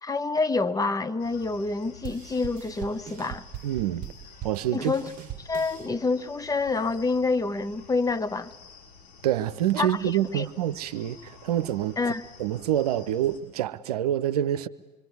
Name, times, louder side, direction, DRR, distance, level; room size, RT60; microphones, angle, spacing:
voice 1, 0.0-3.4 4.7-5.1 5.5-8.5 9.8-10.0 10.3-10.5 12.0-12.2, left 3 dB, 15° left, 1.1 m, -27 dB
sound 1, 1.2-13.4, left 6 dB, 70° left, 6.7 m, -51 dB
sound 2, 2.0-5.9, right 12 dB, 40° right, 1.3 m, -41 dB
voice 2, 3.6-4.0 4.4-4.9 9.2-12.0 12.4-14.7, right 11 dB, 65° right, 0.9 m, -26 dB
25.5 x 23.5 x 9.4 m
figure-of-eight pair, 70°, 21 cm